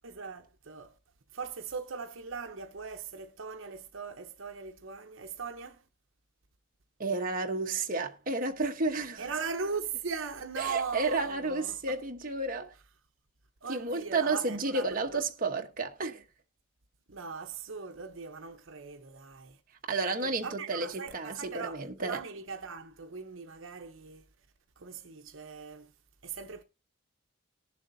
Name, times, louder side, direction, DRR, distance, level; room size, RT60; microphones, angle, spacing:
voice 1, 0.0-1.0 1.3-5.9 9.2-12.0 13.6-15.3 17.1-19.6 20.1-24.3 24.8-25.9 26.2-26.6, right 5 dB, 70° right, 0.9 m, -40 dB
voice 2, 7.0-9.2 10.6-12.7 13.7-16.2 19.9-22.2, right 3 dB, 45° right, 1.1 m, -31 dB
19.0 x 7.2 x 2.7 m
head